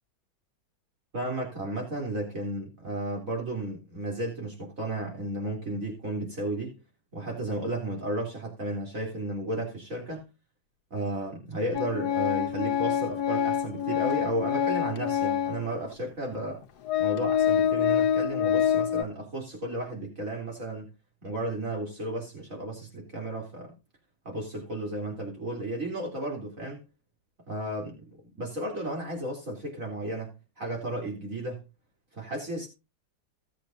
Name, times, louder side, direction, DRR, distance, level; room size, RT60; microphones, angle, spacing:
voice 1, 1.1-6.7 7.1-10.2 10.9-16.6 17.0-20.9 21.2-23.7 24.3-26.8 27.5-27.9 28.2-31.7 32.1-32.7, right 1 dB, 55° right, 3.8 m, -33 dB
Organ, 11.7-15.7 16.3-16.4 16.9-19.0, left 9 dB, 80° left, 1.3 m, -26 dB
17.5 x 8.3 x 2.6 m
omnidirectional pair, 1.7 m